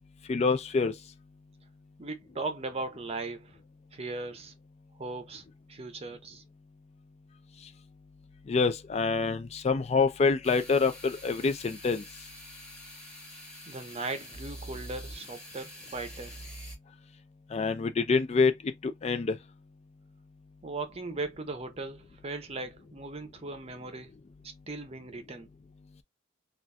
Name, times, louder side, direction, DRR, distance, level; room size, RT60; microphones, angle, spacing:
voice 1, 0.3-0.9 8.5-12.0 17.5-19.4, left 4 dB, 35° left, 0.4 m, -26 dB
voice 2, 2.0-3.6 3.9-4.5 5.0-5.4 5.7-6.4 13.7-16.4 20.6-24.1 24.4-25.5, right 3 dB, 30° right, 0.6 m, -38 dB
sound 1, 10.4-16.7, equal, 5° left, 1.7 m, -46 dB
3.9 x 2.4 x 2.2 m
head